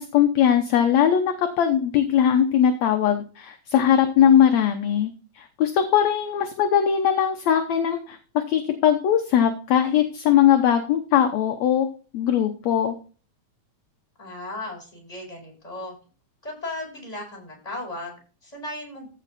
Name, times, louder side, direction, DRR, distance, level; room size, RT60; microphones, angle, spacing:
voice 1, 0.0-8.2 8.5-11.9 12.1-12.9, left 9 dB, 70° left, 6 dB, 2.0 m, -20 dB
voice 2, 14.2-16.0 16.4-19.1, left 2 dB, 10° left, -1 dB, 5.2 m, -36 dB
15.0 x 5.3 x 4.1 m, 0.36 s
omnidirectional pair, 3.6 m